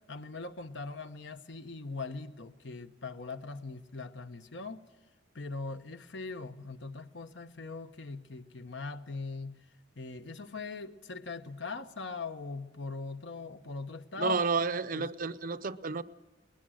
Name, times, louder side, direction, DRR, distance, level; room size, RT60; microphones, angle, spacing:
voice 1, 0.1-4.8 5.3-9.6 10.0-14.4 14.9-15.1, left 4 dB, 75° left, 9 dB, 1.1 m, -41 dB
voice 2, 14.2-16.0, right 4 dB, 50° right, 15 dB, 0.6 m, -31 dB
20.0 x 20.0 x 6.4 m, 1.3 s
head